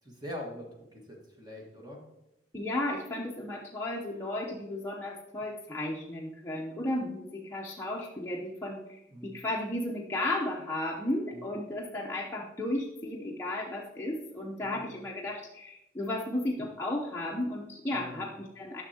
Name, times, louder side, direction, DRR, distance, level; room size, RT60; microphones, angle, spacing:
voice 1, 0.0-2.0 9.1-9.5 11.3-11.5 14.6-15.0 17.8-18.3, left 1 dB, 20° right, -1 dB, 1.5 m, -44 dB
voice 2, 2.5-18.8, left 1 dB, 15° left, -4 dB, 0.7 m, -34 dB
10.5 x 6.2 x 2.8 m, 0.88 s
head